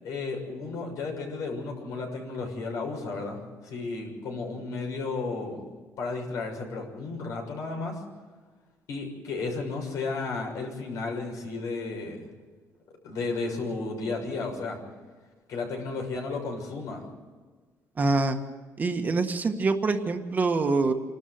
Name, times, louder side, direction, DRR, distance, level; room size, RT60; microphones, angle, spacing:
voice 1, 0.0-5.7 6.0-8.0 8.9-12.3 13.0-14.8 15.5-17.0, left 3 dB, 75° left, 2 dB, 6.6 m, -33 dB
voice 2, 18.0-18.4 18.8-20.9, right 3 dB, 30° right, 5 dB, 1.6 m, -25 dB
28.0 x 13.0 x 8.0 m, 1.4 s
cardioid pair, 145°, 6 cm